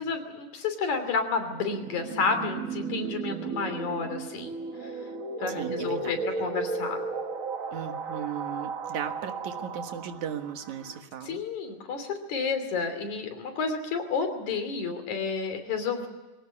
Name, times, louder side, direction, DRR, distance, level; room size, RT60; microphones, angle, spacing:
voice 1, 0.0-4.5 5.4-7.0 11.2-16.1, left 4 dB, 80° left, 6 dB, 4.5 m, -30 dB
sound 1, 1.5-11.0, right 4 dB, 50° right, 1.0 m, -35 dB
voice 2, 5.5-6.2 7.7-11.4, right 8 dB, 80° right, 7 dB, 3.0 m, -37 dB
22.5 x 18.0 x 9.8 m, 1.2 s
omnidirectional pair, 3.3 m